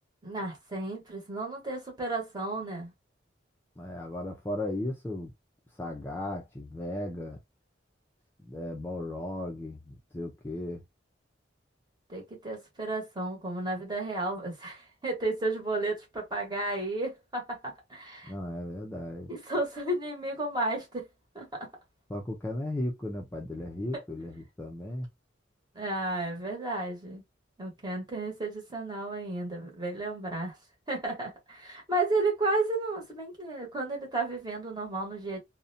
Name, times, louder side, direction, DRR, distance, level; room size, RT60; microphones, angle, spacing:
voice 1, 0.2-2.9 12.1-18.3 19.3-21.1 21.3-21.7 25.7-27.2 27.6-30.5 30.9-35.4, right 2 dB, 20° right, 1.0 m, -33 dB
voice 2, 3.8-5.3 5.8-7.4 8.4-10.8 18.2-19.3 22.1-25.1, left 1 dB, 10° left, 0.4 m, -36 dB
2.6 x 2.1 x 2.6 m
head